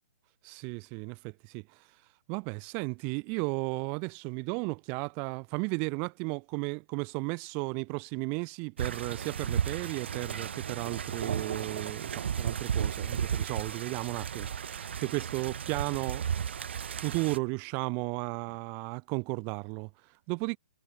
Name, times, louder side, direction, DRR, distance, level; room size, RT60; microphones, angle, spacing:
voice 1, 0.4-1.9 2.3-16.3 17.0-20.6, right 34 dB, 30° right, 0.9 m, -34 dB
sound 1, 8.8-17.4, right 8 dB, 75° right, 0.9 m, -34 dB
hypercardioid pair, 150°, 6 cm